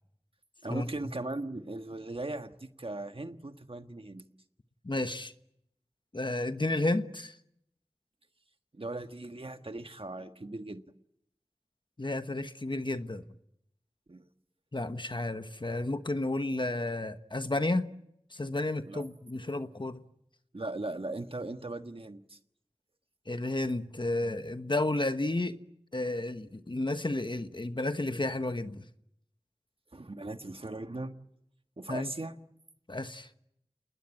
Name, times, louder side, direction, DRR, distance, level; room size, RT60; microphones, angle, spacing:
voice 1, 0.6-4.2 8.7-10.8 14.1-14.3 18.8-19.0 20.5-22.4 29.9-31.2 31.8-32.4, right 2 dB, 60° right, 1.5 m, -38 dB
voice 2, 4.8-5.3 6.1-7.4 12.0-13.2 14.7-17.9 18.3-20.0 23.3-25.6 25.9-28.9 31.9-32.1 32.9-33.3, left 2 dB, 45° left, 1.3 m, -32 dB
28.5 x 20.0 x 8.9 m
wide cardioid pair, 50°, 11 cm